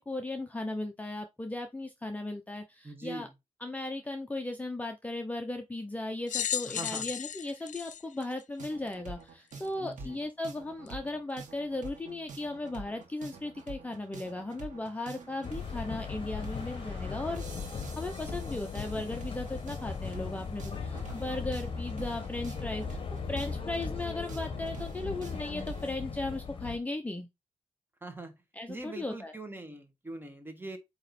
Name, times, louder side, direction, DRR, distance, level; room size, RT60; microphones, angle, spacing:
voice 1, 0.0-3.3 3.6-23.0 23.3-27.3 28.5-29.3, left 2 dB, 10° left, 0.7 m, -37 dB
voice 2, 2.8-3.3 6.8-7.0 9.8-10.2 20.9-21.2 28.0-28.4 28.7-30.8, right 2 dB, 15° right, 1.4 m, -42 dB
sound 1, 6.3-8.9 9.6-9.7 10.9-11.0, left 10 dB, 90° left, 0.5 m, -35 dB
sound 2, 8.6-25.9, right 3 dB, 85° right, 1.8 m, -47 dB
sound 3, 15.4-26.8, left 5 dB, 45° left, 1.0 m, -38 dB
8.5 x 3.0 x 4.2 m
wide cardioid pair, 135°, 12 cm